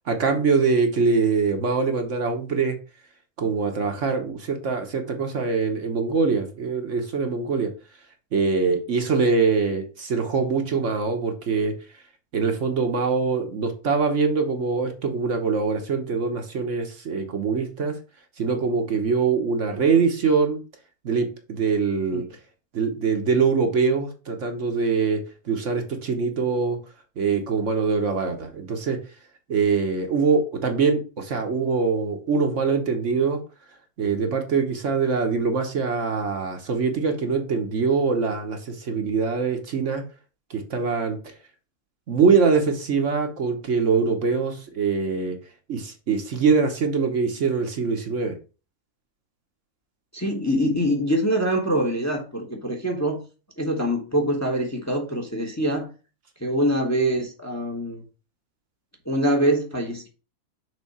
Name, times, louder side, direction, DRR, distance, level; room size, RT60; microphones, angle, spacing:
voice 1, 0.1-2.7 3.4-7.7 8.3-11.7 12.3-18.0 18.4-20.6 21.0-22.2 22.7-25.2 25.5-26.8 27.2-29.0 29.5-33.4 34.0-40.0 40.5-41.2 42.1-45.4 45.7-48.3, right 5 dB, 55° right, 1.3 m, -23 dB
voice 2, 50.1-53.2 53.6-55.9 56.4-58.0 59.0-60.1, equal, 10° left, 1.1 m, -24 dB
6.4 x 3.9 x 5.4 m
omnidirectional pair, 1.6 m